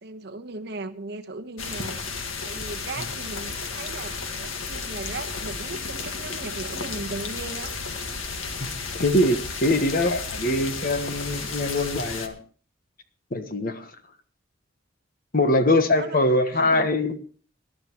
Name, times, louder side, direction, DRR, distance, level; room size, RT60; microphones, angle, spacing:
voice 1, 0.0-2.0 2.4-7.7 15.8-16.9, right 3 dB, 55° right, 6 dB, 1.1 m, -37 dB
sound 1, 1.6-12.3, left 4 dB, 85° left, 1.7 m, -33 dB
voice 2, 8.9-12.4 13.3-13.9 15.3-17.2, left 1 dB, 45° left, 9 dB, 1.3 m, -23 dB
20.5 x 12.0 x 3.1 m, 0.41 s
head